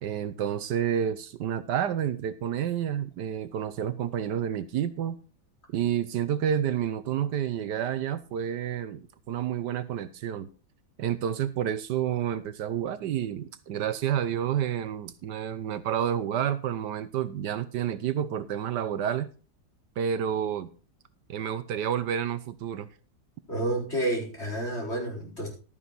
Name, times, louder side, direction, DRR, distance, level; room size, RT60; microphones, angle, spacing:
voice 1, 0.0-5.2 5.7-10.5 11.0-19.3 20.0-20.7 21.3-22.9, right 9 dB, 75° right, 1.4 m, -29 dB
voice 2, 23.5-25.5, right 1 dB, 35° left, 4.8 m, -30 dB
12.5 x 9.2 x 4.1 m
omnidirectional pair, 1.9 m